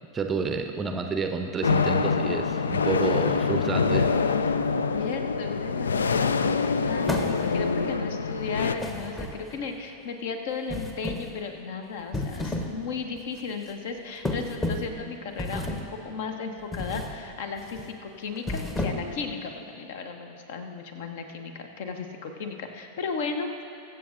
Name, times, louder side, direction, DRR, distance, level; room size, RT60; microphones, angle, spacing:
voice 1, 0.1-4.1, right 4 dB, 20° right, 5 dB, 0.6 m, -29 dB
sound 1, 1.6-8.8, left 5 dB, 70° left, 0.3 m, -25 dB
voice 2, 4.9-23.6, left 5 dB, 55° left, 6 dB, 1.0 m, -35 dB
sound 2, 7.0-7.7 8.8-9.7 10.7-11.4 12.0-12.8 13.2-13.4 14.2-15.0 15.4-16.0 16.7-17.2 17.6-17.8 18.4-19.2, left 2 dB, 15° left, 1.0 m, -32 dB
22.5 x 7.6 x 2.6 m, 3.0 s
figure-of-eight pair, 90°, 0 cm